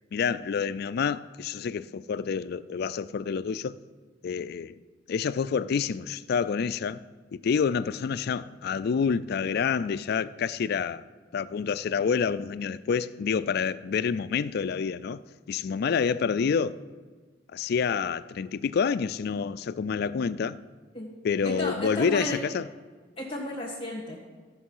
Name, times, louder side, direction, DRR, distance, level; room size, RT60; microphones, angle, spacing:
voice 1, 0.1-3.7 4.2-4.7 5.1-7.0 7.3-11.0 11.3-15.2 15.5-16.8 17.5-20.6 21.2-22.6, left 6 dB, 55° left, 0.3 m, -28 dB
voice 2, 21.4-22.4 23.2-24.2, left 1 dB, 30° left, 1.6 m, -33 dB
15.0 x 6.2 x 5.6 m
head